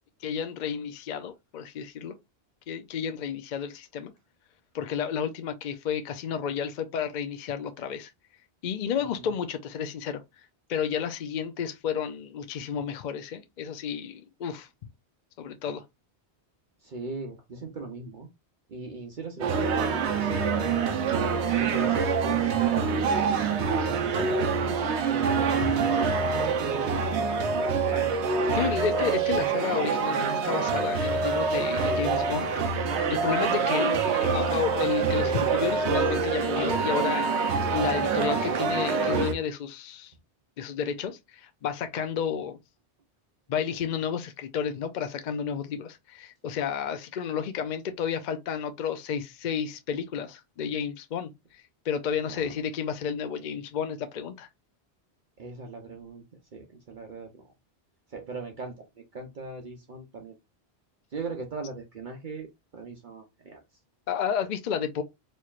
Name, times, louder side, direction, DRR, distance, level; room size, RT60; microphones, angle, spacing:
voice 1, 0.2-2.2 2.7-4.1 4.7-8.1 8.6-10.2 10.7-14.7 15.4-15.8 28.5-32.5 33.1-37.3 37.7-40.1 40.6-42.6 43.5-54.5 64.1-65.0, left 7 dB, 55° left, 0.5 m, -31 dB
voice 2, 16.8-18.3 18.7-21.0 21.5-23.3 23.8-24.8 25.1-28.1 52.3-52.5 55.4-56.2 56.5-57.5 58.1-58.9 59.1-60.3 61.1-63.6, right 4 dB, 50° right, 0.8 m, -39 dB
sound 1, 19.4-39.3, right 5 dB, 85° right, 1.0 m, -26 dB
4.3 x 3.0 x 2.4 m
omnidirectional pair, 1.1 m